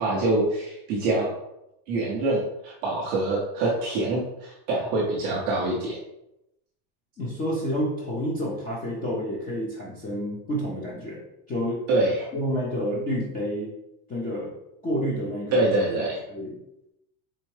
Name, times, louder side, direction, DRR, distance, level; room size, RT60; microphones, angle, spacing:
voice 1, 0.0-1.4 1.9-6.0 11.9-12.3 15.5-16.2, right 2 dB, 25° right, -4 dB, 0.3 m, -25 dB
voice 2, 7.2-11.2 11.5-11.8 12.3-13.7 14.1-14.5 14.8-15.7 16.3-16.6, equal, 20° left, -5 dB, 0.6 m, -29 dB
4.2 x 3.5 x 3.1 m, 0.85 s
supercardioid pair, 160°, 46 cm